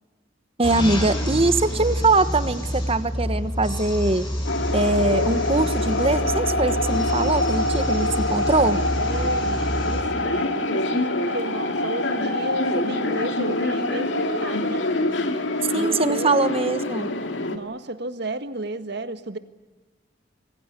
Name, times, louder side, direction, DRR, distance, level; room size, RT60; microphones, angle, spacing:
sound 1, 0.6-10.0, equal, 25° left, 7.5 m, -28 dB
voice 1, 0.6-4.3 4.7-8.8 15.7-17.1, right 2 dB, 30° right, 12 dB, 1.3 m, -22 dB
sound 2, 4.4-17.6, left 1 dB, 70° left, 2.3 m, -25 dB
voice 2, 9.0-14.9 15.7-16.4 17.5-19.4, right 1 dB, 60° right, 10 dB, 1.7 m, -33 dB
26.0 x 22.5 x 8.3 m, 1.2 s
head